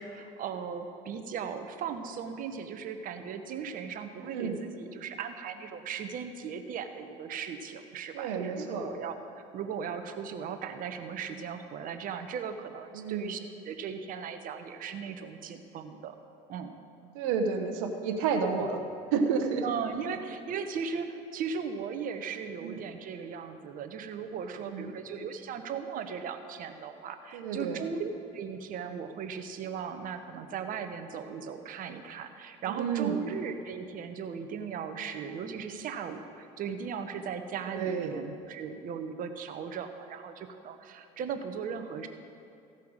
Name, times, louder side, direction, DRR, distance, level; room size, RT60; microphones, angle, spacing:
voice 1, 0.0-16.2 16.5-16.7 19.6-42.1, right 6 dB, 55° right, 8 dB, 1.0 m, -37 dB
voice 2, 4.2-4.6 8.1-8.9 12.9-13.4 17.1-18.8 19.1-19.6 22.6-22.8 24.6-24.9 27.3-27.8 32.7-33.2 37.7-38.2, right 5 dB, 80° right, 5 dB, 1.1 m, -30 dB
15.5 x 5.7 x 6.4 m, 2.6 s
supercardioid pair, 75°, 17 cm